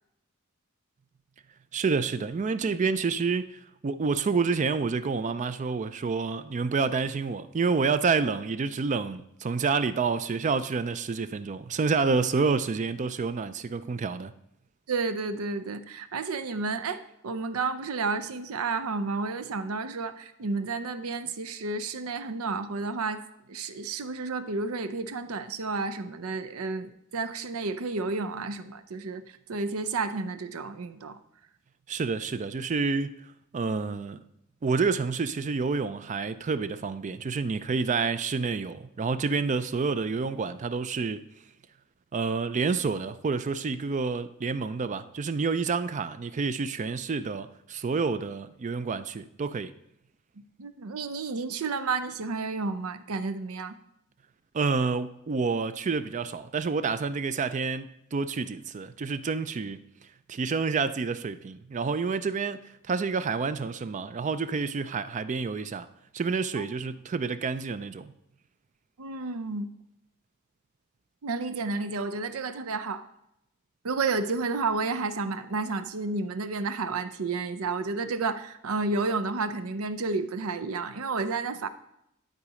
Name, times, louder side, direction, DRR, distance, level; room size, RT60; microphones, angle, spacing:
voice 1, 1.7-3.5 3.8-14.3 31.9-33.1 33.5-34.2 34.6-41.3 42.1-49.7 54.5-59.8 60.3-62.6 62.9-65.9 66.1-68.1, right 4 dB, 35° right, 0.4 m, -28 dB
voice 2, 14.9-23.2 23.5-29.2 29.5-31.2 50.6-53.8 66.6-66.7 69.0-69.7 71.2-73.1 73.8-81.7, right 4 dB, 80° right, 0.6 m, -31 dB
11.5 x 4.1 x 4.9 m
head